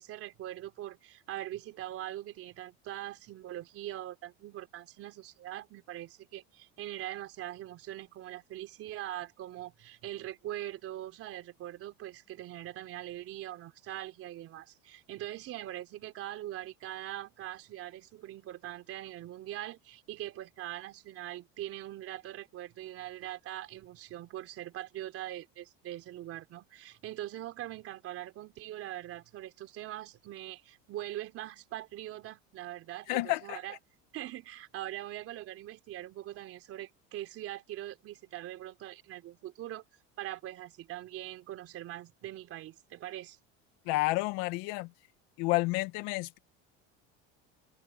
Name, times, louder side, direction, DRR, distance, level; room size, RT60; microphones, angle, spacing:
voice 1, 0.0-33.8 34.1-39.8 40.2-43.4, right 14 dB, 50° right, 3.8 m, -42 dB
voice 2, 33.1-33.6 43.9-44.9 45.4-46.4, left 22 dB, 80° left, 2.0 m, -30 dB
cardioid pair, 135°, 29 cm